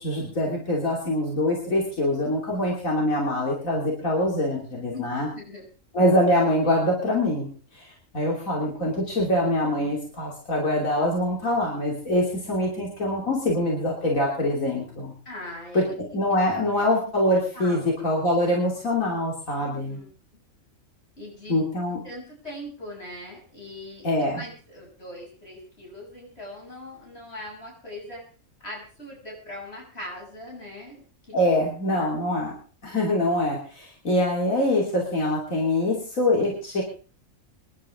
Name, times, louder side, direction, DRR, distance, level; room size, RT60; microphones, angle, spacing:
voice 1, 0.0-5.3 5.9-15.1 15.7-20.0 21.5-22.0 24.0-24.4 31.3-32.5 32.8-36.8, left 1 dB, 85° left, -2 dB, 3.4 m, -24 dB
voice 2, 5.3-5.6 15.3-16.8 17.3-17.8 19.6-20.1 21.2-21.7 22.0-28.2 28.6-31.6 31.9-32.1, left 1 dB, 50° left, -2 dB, 7.7 m, -41 dB
26.0 x 11.5 x 3.7 m, 0.38 s
omnidirectional pair, 1.4 m